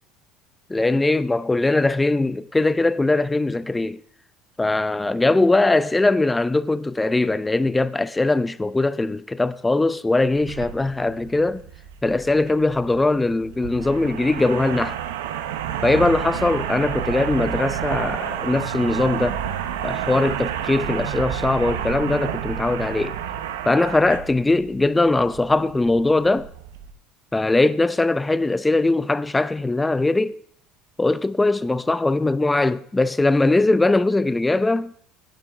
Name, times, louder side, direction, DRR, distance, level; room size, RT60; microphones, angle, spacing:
voice 1, 0.7-4.0 4.6-11.6 12.0-15.0 15.8-19.4 19.8-23.2 23.6-26.5 27.3-30.4 31.0-34.9, left 2 dB, 15° left, 0.6 m, -21 dB
sound 1, 10.4-26.9, right 10 dB, 80° right, 1.0 m, -30 dB
9.6 x 9.1 x 4.8 m
hypercardioid pair, 70°, 0 cm